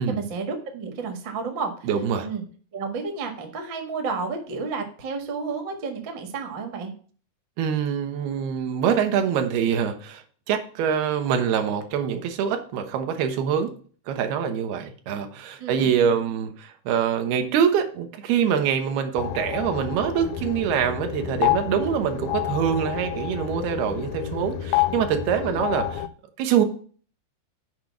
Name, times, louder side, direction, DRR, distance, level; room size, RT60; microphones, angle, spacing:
voice 1, 0.0-1.9 2.2-2.4 2.7-6.9 15.6-15.9 25.4-25.6, right 4 dB, 50° right, 4 dB, 1.4 m, -31 dB
voice 2, 1.9-2.3 7.6-13.7 14.1-26.1 26.4-26.6, right 8 dB, 80° right, 7 dB, 2.9 m, -24 dB
sound 1, 19.2-26.1, left 12 dB, 85° left, 2.1 m, -28 dB
8.0 x 5.1 x 5.9 m, 0.43 s
omnidirectional pair, 4.5 m